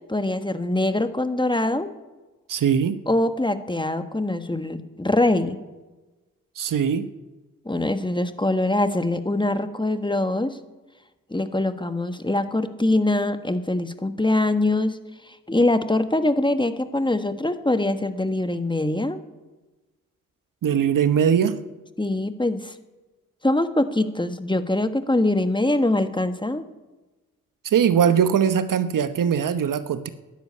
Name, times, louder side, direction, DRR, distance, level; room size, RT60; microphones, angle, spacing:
voice 1, 0.1-1.9 3.1-5.6 7.6-10.6 11.3-15.0 15.5-19.2 22.0-22.7 23.4-26.7, left 2 dB, 15° left, 9 dB, 1.5 m, -23 dB
voice 2, 2.5-3.0 6.6-7.1 20.6-21.6 27.6-30.1, right 8 dB, 70° right, 12 dB, 1.0 m, -21 dB
12.5 x 10.5 x 9.6 m, 1.2 s
supercardioid pair, 40°, 34 cm